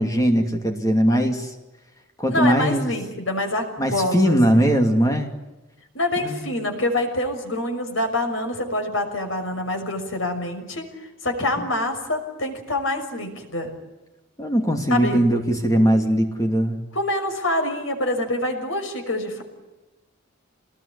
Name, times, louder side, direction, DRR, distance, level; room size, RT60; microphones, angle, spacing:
voice 1, 0.0-1.5 2.2-3.0 3.8-5.3 6.2-6.5 11.6-11.7 14.4-16.8, equal, 15° left, 4 dB, 2.6 m, -20 dB
voice 2, 2.3-4.6 5.9-10.9 11.2-13.7 14.9-15.3 16.9-19.4, left 1 dB, 75° left, 5 dB, 6.2 m, -26 dB
27.0 x 20.0 x 9.9 m, 1.1 s
head